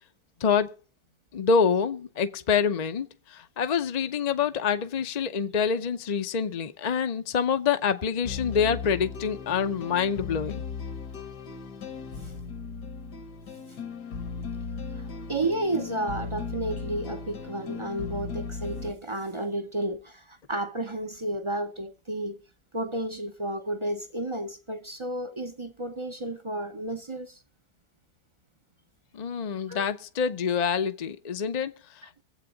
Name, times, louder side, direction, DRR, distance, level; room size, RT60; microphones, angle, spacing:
voice 1, 0.4-0.7 1.3-10.6 29.1-32.2, left 6 dB, 55° left, 0.4 m, -26 dB
sound 1, 8.2-18.9, left 5 dB, 70° left, 1.8 m, -37 dB
voice 2, 14.9-22.4 22.7-27.4 29.7-29.9, right 1 dB, 45° right, 0.3 m, -32 dB
22.5 x 7.9 x 4.0 m
omnidirectional pair, 1.8 m